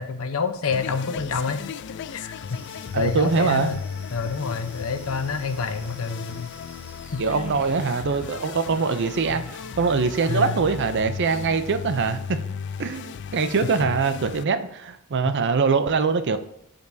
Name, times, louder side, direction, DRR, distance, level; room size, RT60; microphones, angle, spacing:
voice 1, 0.0-1.6 2.1-2.6 2.9-3.8 4.1-6.6 7.1-7.6 10.3-10.6 15.3-15.4, left 5 dB, 75° left, 8 dB, 0.8 m, -28 dB
sound 1, 0.7-14.4, left 7 dB, 55° left, 0.3 m, -36 dB
sound 2, 2.4-10.3, right 1 dB, 5° right, 1.2 m, -50 dB
voice 2, 2.9-3.8 7.2-12.4 12.8-16.4, right 4 dB, 55° right, 10 dB, 0.5 m, -23 dB
15.0 x 5.2 x 2.7 m, 0.77 s
head